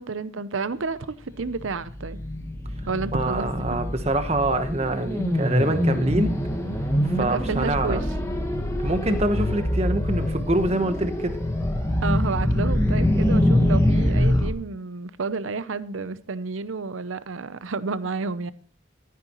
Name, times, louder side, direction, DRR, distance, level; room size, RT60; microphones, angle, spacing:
voice 1, 0.0-2.2 2.9-3.7 7.2-8.0 12.0-18.5, right 4 dB, 80° right, 0.7 m, -30 dB
sound 1, 1.4-14.5, left 1 dB, 15° left, 1.3 m, -24 dB
voice 2, 3.1-6.3 7.0-8.0 8.8-11.4, right 1 dB, 30° right, 1.1 m, -25 dB
14.0 x 9.5 x 3.0 m
head